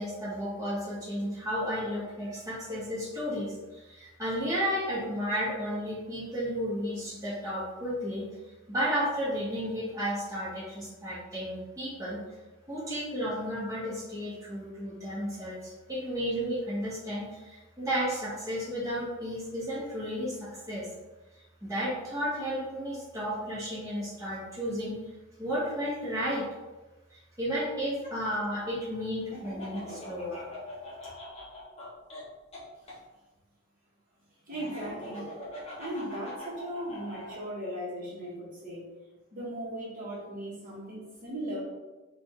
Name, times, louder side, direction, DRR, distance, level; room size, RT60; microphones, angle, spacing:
voice 1, 0.0-8.3 8.7-12.2 12.7-20.9 21.6-24.9 25.4-26.4 27.1-30.4, equal, 15° right, -8 dB, 1.1 m, -33 dB
Laughter, 29.3-33.0 34.5-37.4, left 1 dB, 30° left, 0.8 m, -42 dB
voice 2, 34.5-35.3 35.8-38.8 39.3-41.6, right 1 dB, 40° right, -7 dB, 1.1 m, -37 dB
5.0 x 2.4 x 3.0 m, 1.1 s
head